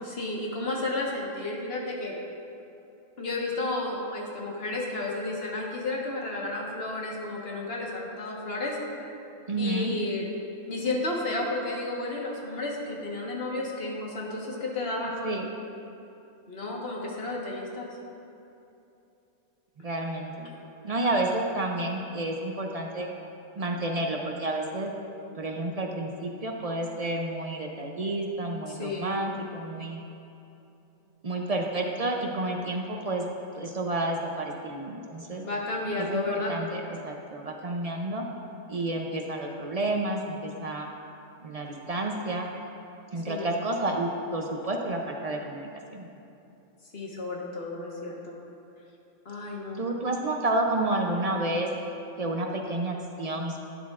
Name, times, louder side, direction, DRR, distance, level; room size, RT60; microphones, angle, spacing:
voice 1, 0.0-2.1 3.2-8.8 9.6-10.2 10.7-15.2 16.5-17.9 28.7-29.1 35.4-36.5 43.3-43.5 46.9-48.3 49.2-49.8, left 2 dB, 45° left, -2 dB, 1.5 m, -32 dB
voice 2, 9.5-9.9 15.2-15.5 19.8-20.5 20.8-23.1 23.6-24.9 25.4-30.0 31.2-33.2 33.6-35.5 36.0-38.3 38.7-40.9 41.4-42.5 43.1-46.1 49.8-51.7 52.2-53.6, right 2 dB, 55° right, 1 dB, 0.4 m, -30 dB
11.5 x 9.5 x 2.4 m, 2.8 s
omnidirectional pair, 1.5 m